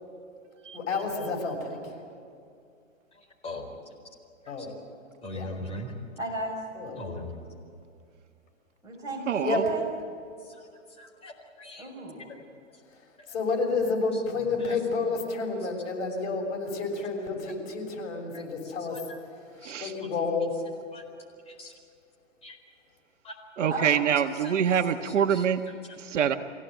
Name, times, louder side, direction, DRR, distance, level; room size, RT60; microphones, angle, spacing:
voice 1, 0.7-1.8 4.5-4.7 5.3-5.5 6.7-7.0 9.4-9.6 13.3-19.0 19.8-20.6, left 4 dB, 60° left, 1 dB, 6.8 m, -30 dB
voice 2, 3.1-3.7 4.4-4.7 5.2-5.9 7.0-7.3 10.4-10.7 11.0-11.3 11.6-11.9 13.2-13.3 14.1-14.2 14.6-14.8 18.3-19.2 19.6-20.1 20.9-21.0 21.5-21.7 22.4-22.6 23.2-23.4 24.4-24.6 25.0-25.7, left 1 dB, 15° left, -1 dB, 4.4 m, -41 dB
voice 3, 6.2-6.6 8.8-9.8 11.8-12.3 23.7-24.3, right 2 dB, 10° right, -4 dB, 6.6 m, -35 dB
voice 4, 9.3-9.6 19.6-19.9 23.6-25.6 26.0-26.3, right 8 dB, 65° right, 7 dB, 1.4 m, -25 dB
25.0 x 17.0 x 9.0 m, 2.4 s
hypercardioid pair, 140°, 38 cm